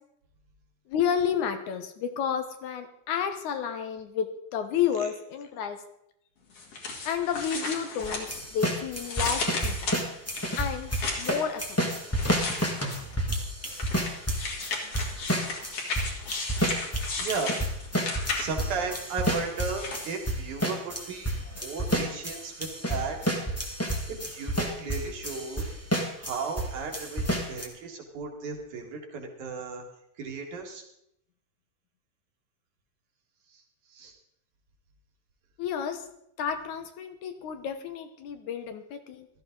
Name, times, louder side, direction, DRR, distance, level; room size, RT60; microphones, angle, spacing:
voice 1, 0.9-5.8 7.1-9.9 10.6-10.9 11.2-11.6 11.9-12.2 35.6-36.0 36.4-39.3, left 8 dB, 70° left, 8 dB, 2.3 m, -31 dB
sound 1, 6.5-8.7 9.0-11.4 12.1-13.2 13.7-18.7 19.4-20.1, left 3 dB, 45° left, 3.0 m, -34 dB
sound 2, 8.0-26.7 26.9-27.7, equal, 10° left, 0.9 m, -30 dB
voice 2, 17.2-17.6 18.4-23.2 24.1-25.7 26.2-29.8 30.2-30.8 33.5-33.6 33.9-34.2, right 4 dB, 65° right, 1 dB, 3.3 m, -35 dB
16.0 x 13.0 x 3.9 m, 0.75 s
omnidirectional pair, 3.9 m